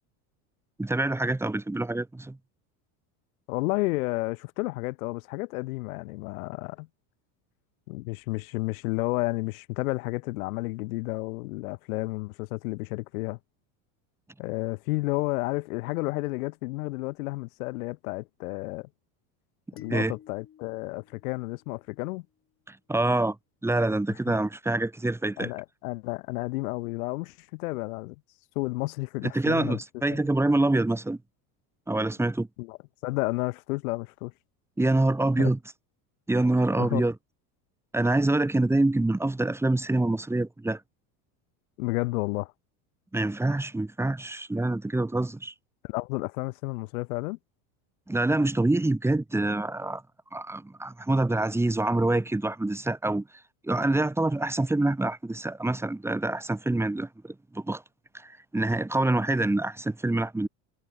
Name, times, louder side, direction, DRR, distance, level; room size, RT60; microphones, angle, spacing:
voice 1, 0.8-2.4 19.9-20.1 22.7-23.4 23.6-25.5 29.2-31.2 31.9-32.5 34.8-35.6 36.3-37.1 37.9-40.8 43.1-45.5 48.1-50.0 50.3-53.2 53.6-57.8 58.1-60.5, right 2 dB, 5° right, 2.6 m, -26 dB
voice 2, 3.5-6.9 7.9-13.4 14.4-18.9 19.7-22.3 24.3-24.4 25.4-28.2 28.6-29.8 30.1-30.2 32.6-34.3 35.4-35.5 36.7-37.0 41.8-42.5 45.8-47.4, left 23 dB, 90° left, 3.6 m, -31 dB
sound 1, 19.8-22.2, left 9 dB, 30° left, 5.6 m, -52 dB
cardioid pair, 140°, 41 cm